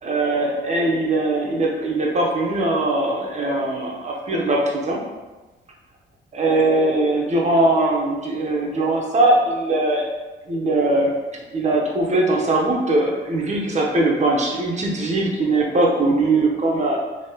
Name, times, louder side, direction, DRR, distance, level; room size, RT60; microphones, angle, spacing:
voice 1, 0.0-5.0 6.3-10.1 10.5-11.1 11.5-17.0, right 2 dB, 35° right, -1 dB, 0.8 m, -20 dB
3.4 x 2.9 x 2.8 m, 1.2 s
cardioid pair, 90°, 20 cm